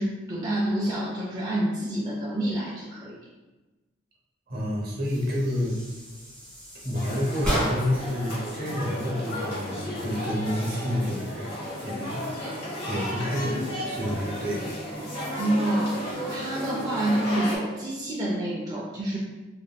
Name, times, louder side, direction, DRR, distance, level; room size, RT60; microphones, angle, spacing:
voice 1, 0.0-3.2 15.4-19.2, right 1 dB, 20° right, -5 dB, 0.4 m, -28 dB
voice 2, 4.5-5.8 6.8-12.3 12.9-14.7, equal, 55° right, -3 dB, 0.8 m, -29 dB
sound 1, 5.0-8.1, equal, 5° left, 1.3 m, -33 dB
sound 2, 6.9-17.6, left 1 dB, 60° left, 0.9 m, -33 dB
3.2 x 2.5 x 2.2 m, 1.2 s
head